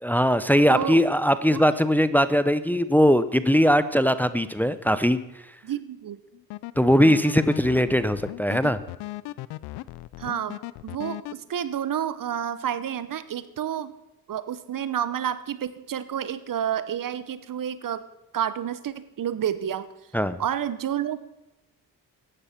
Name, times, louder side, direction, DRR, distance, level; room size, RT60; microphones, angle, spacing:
voice 1, 0.0-5.2 6.8-8.8 20.1-20.4, equal, 5° left, 13 dB, 0.7 m, -20 dB
voice 2, 0.7-1.0 1.5-1.6 5.6-6.2 10.2-10.6 10.8-13.9 14.3-18.0 18.3-19.9 20.4-21.2, right 9 dB, 55° right, 15 dB, 1.0 m, -29 dB
sound 1, 6.3-11.3, left 18 dB, 85° left, 0.5 m, -37 dB
14.0 x 10.0 x 5.9 m, 0.95 s
supercardioid pair, 60°, 38 cm